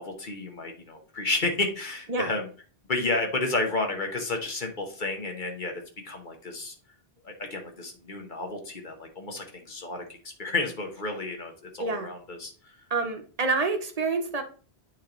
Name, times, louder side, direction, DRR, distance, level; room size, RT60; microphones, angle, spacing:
voice 1, 0.0-2.5 2.9-6.7 7.2-12.8, left 2 dB, 50° left, 3 dB, 1.3 m, -31 dB
voice 2, 11.8-12.1 12.9-14.4, right 3 dB, 35° right, 5 dB, 1.1 m, -27 dB
8.8 x 3.4 x 3.8 m, 0.39 s
omnidirectional pair, 1.1 m